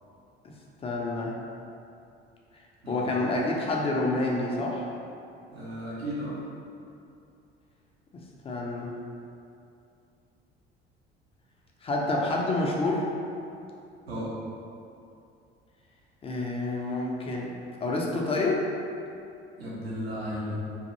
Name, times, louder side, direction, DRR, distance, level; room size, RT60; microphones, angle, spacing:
voice 1, 0.8-1.4 2.5-4.9 8.4-8.9 11.8-13.1 16.2-17.5 17.8-18.7, left 2 dB, 20° left, -2 dB, 0.4 m, -28 dB
voice 2, 5.5-6.4 14.1-14.3 19.6-20.6, equal, 80° right, -8 dB, 0.7 m, -34 dB
2.6 x 2.5 x 2.7 m, 2.6 s
figure-of-eight pair, 55°, 31 cm